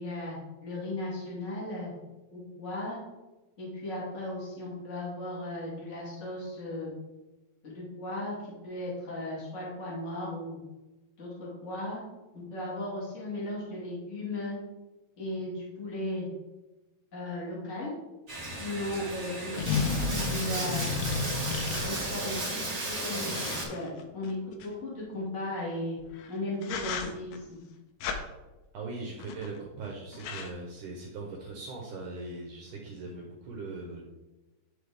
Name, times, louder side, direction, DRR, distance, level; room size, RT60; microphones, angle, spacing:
voice 1, 0.0-1.9 2.3-3.0 3.6-6.9 7.6-8.3 8.6-10.6 11.2-12.0 12.3-14.6 15.2-16.3 17.1-17.9 18.6-20.9 21.8-26.0 26.3-27.6, left 1 dB, 40° left, -6 dB, 1.0 m, -36 dB
Bathtub (filling or washing), 18.3-23.6, right 2 dB, 40° right, 1.0 m, -34 dB
sound 1, 18.6-18.7 19.6-22.4 23.3-24.7 26.0-26.3 26.6-27.4 28.0-28.2 29.2-29.6 29.8-29.9 30.1-30.5, left 5 dB, 75° left, 2.2 m, -33 dB
voice 2, 28.7-34.0, right 3 dB, 75° right, -1 dB, 1.9 m, -40 dB
11.5 x 4.4 x 3.4 m, 1.1 s
omnidirectional pair, 4.9 m